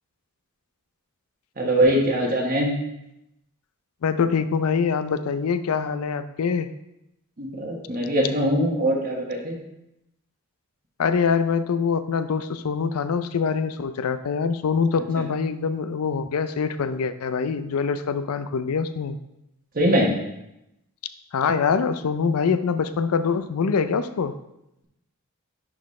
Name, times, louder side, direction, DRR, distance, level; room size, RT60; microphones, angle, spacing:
voice 1, 1.6-2.7 7.4-9.6 19.7-20.1, right 1 dB, 40° right, -1 dB, 1.2 m, -22 dB
voice 2, 4.0-6.7 11.0-19.2 21.3-24.4, left 5 dB, 80° left, 11 dB, 0.4 m, -24 dB
10.5 x 4.1 x 3.2 m, 0.87 s
head